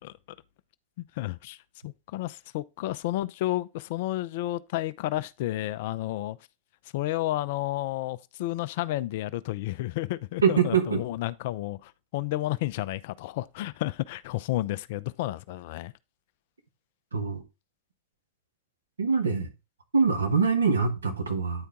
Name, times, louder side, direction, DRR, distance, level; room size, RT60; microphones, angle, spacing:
voice 1, 1.0-1.6 1.8-6.4 6.9-15.9, left 15 dB, 50° left, 0.4 m, -31 dB
voice 2, 10.4-11.0 17.1-17.4 19.0-19.5 19.9-21.7, right 5 dB, 75° right, 1.5 m, -24 dB
9.7 x 4.5 x 3.6 m
figure-of-eight pair, 90°, 0 cm